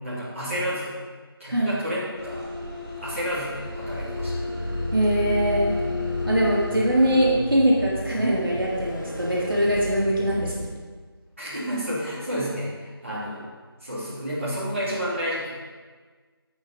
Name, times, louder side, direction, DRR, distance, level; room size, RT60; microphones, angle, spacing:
voice 1, 0.0-0.9 1.4-2.4 3.0-4.4 11.4-12.7 13.0-13.4 13.8-15.5, equal, 30° right, -11 dB, 3.2 m, -30 dB
sound 1, 2.1-7.3, left 3 dB, 10° left, 1.6 m, -34 dB
sound 2, 3.9-10.7, left 1 dB, 50° left, 1.6 m, -32 dB
voice 2, 4.9-5.7 6.2-10.5, right 1 dB, 65° right, -6 dB, 3.6 m, -22 dB
16.5 x 6.8 x 4.2 m, 1.4 s
figure-of-eight pair, 175°, 13 cm